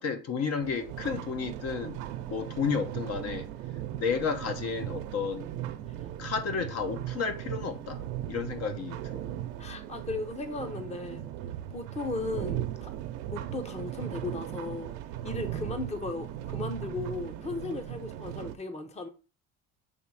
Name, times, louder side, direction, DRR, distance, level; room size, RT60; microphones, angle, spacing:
voice 1, 0.0-2.0 2.3-3.5 3.9-5.5 6.2-8.0 8.3-9.2, left 5 dB, 50° left, 1.1 m, -32 dB
sound 1, 0.6-18.6, right 12 dB, 85° right, 0.9 m, -38 dB
voice 2, 9.6-11.2 11.7-12.9 13.3-14.9 15.2-19.1, left 3 dB, 20° left, 0.9 m, -36 dB
7.7 x 3.2 x 4.8 m
cardioid pair, 110°, 33 cm